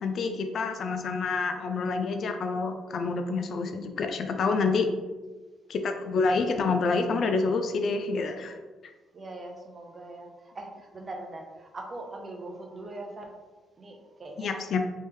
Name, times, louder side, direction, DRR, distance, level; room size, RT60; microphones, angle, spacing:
voice 1, 0.0-4.9 5.7-8.6 14.4-14.9, left 4 dB, 60° left, 6 dB, 0.4 m, -28 dB
voice 2, 9.1-13.3 13.8-14.6, right 2 dB, 35° right, 2 dB, 0.7 m, -41 dB
3.3 x 3.2 x 3.1 m, 1.3 s
cardioid pair, 90°, 0 cm